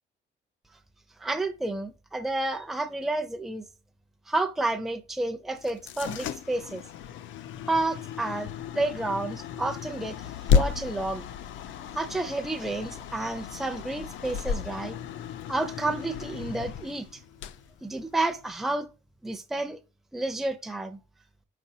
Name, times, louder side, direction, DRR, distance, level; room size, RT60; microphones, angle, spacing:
voice 1, 1.2-3.7 4.3-6.8 7.7-10.2 10.5-11.3 11.9-15.0 15.5-17.2 17.8-18.9 19.2-19.8 20.1-21.0, right 2 dB, ahead, 0.5 m, -30 dB
sound 1, 5.6-18.5, left 7 dB, 75° left, 0.4 m, -33 dB
4.4 x 4.2 x 2.7 m
cardioid pair, 90°, 20 cm